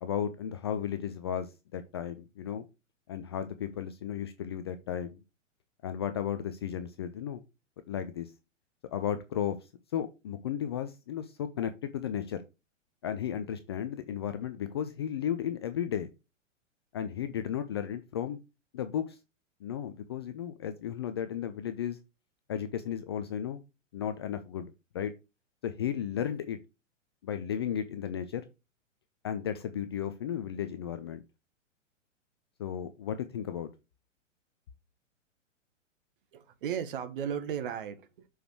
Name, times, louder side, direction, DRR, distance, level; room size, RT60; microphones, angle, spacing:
voice 1, 0.0-2.7 3.1-5.2 5.8-7.4 7.9-8.3 8.9-12.4 13.0-16.1 16.9-18.4 18.7-19.2 19.6-22.0 22.5-23.6 23.9-24.7 24.9-25.1 25.6-26.6 27.2-28.4 29.2-31.2 32.6-33.7, left 9 dB, 20° left, 0.4 m, -34 dB
voice 2, 36.3-38.3, right 8 dB, 45° right, 1.4 m, -35 dB
6.3 x 4.9 x 4.5 m
figure-of-eight pair, 110°, 38 cm